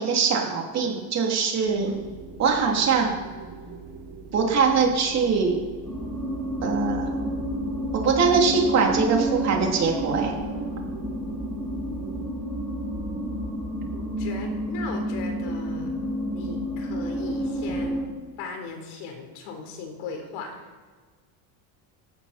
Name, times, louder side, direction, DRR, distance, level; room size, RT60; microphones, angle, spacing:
voice 1, 0.0-1.9 2.4-3.1 4.3-5.6 6.6-7.3 7.9-10.4, right 5 dB, 35° right, 0 dB, 3.2 m, -22 dB
sound 1, 1.7-12.2, right 4 dB, 55° right, 3.3 m, -42 dB
sound 2, 5.8-18.0, right 1 dB, 5° left, 6.5 m, -30 dB
voice 2, 13.9-15.9 16.3-18.1 18.4-20.7, left 4 dB, 70° left, 3 dB, 4.3 m, -37 dB
18.5 x 15.5 x 4.4 m, 1.4 s
cardioid pair, 175°, 49 cm